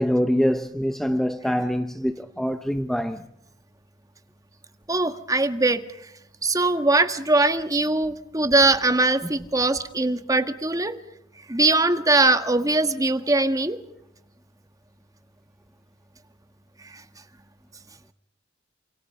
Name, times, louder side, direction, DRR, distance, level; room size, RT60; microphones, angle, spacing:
voice 1, 0.0-3.2 9.2-9.3, equal, ahead, 0.8 m, -24 dB
voice 2, 4.9-5.8 6.4-10.9 11.5-13.8 16.9-17.0, right 2 dB, 20° right, 1.6 m, -21 dB
29.5 x 27.0 x 5.0 m
head